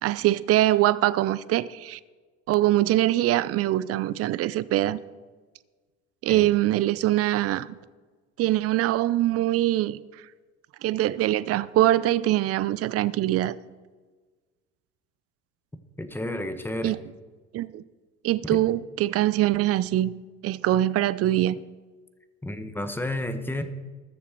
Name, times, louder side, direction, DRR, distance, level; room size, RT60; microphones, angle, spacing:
voice 1, 0.0-2.0 2.5-5.0 6.2-7.7 8.4-10.0 10.8-13.5 16.8-17.0 17.5-17.8 18.2-20.1 20.4-21.6, right 14 dB, 40° right, 0.7 m, -23 dB
voice 2, 16.0-17.0 18.5-18.7 22.4-23.6, left 1 dB, 5° left, 1.4 m, -31 dB
21.0 x 7.0 x 4.6 m
hypercardioid pair, 70°, 35 cm